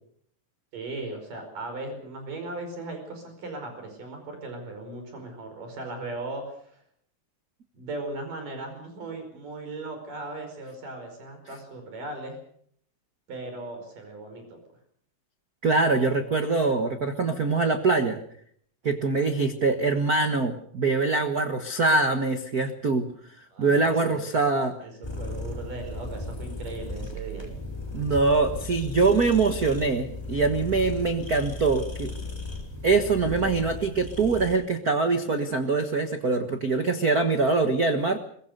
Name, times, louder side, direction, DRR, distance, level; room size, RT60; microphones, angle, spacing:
voice 1, 0.7-6.8 7.7-12.4 13.3-14.6 23.5-24.2 24.5-24.9 25.2-27.5, right 2 dB, 65° right, 5 dB, 6.6 m, -38 dB
voice 2, 15.6-18.2 18.8-23.1 23.6-24.7 27.9-32.1 32.8-38.2, right 3 dB, 85° right, 7 dB, 0.8 m, -23 dB
sound 1, 25.0-34.6, left 2 dB, 5° left, 3.6 m, -36 dB
23.0 x 21.0 x 6.7 m, 0.64 s
omnidirectional pair, 4.1 m